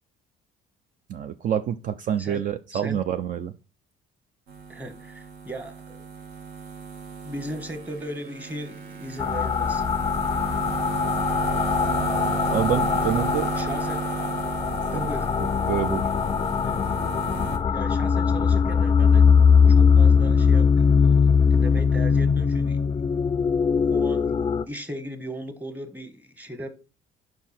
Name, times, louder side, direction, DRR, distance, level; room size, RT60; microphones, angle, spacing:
voice 1, 1.1-3.5 11.8-13.5 14.9-15.1 15.7-16.1, right 10 dB, 50° right, 0.5 m, -27 dB
sound 1, 4.5-17.6, right 5 dB, 75° right, 1.5 m, -34 dB
voice 2, 4.7-6.0 7.2-9.8 13.5-14.0 14.9-15.3 16.6-16.8 17.6-19.3 19.7-22.8 23.9-24.3 24.7-26.7, equal, 10° right, 1.2 m, -37 dB
sound 2, 9.2-24.6, left 6 dB, 30° left, 0.4 m, -21 dB
5.3 x 4.6 x 5.7 m
cardioid pair, 110°, 17 cm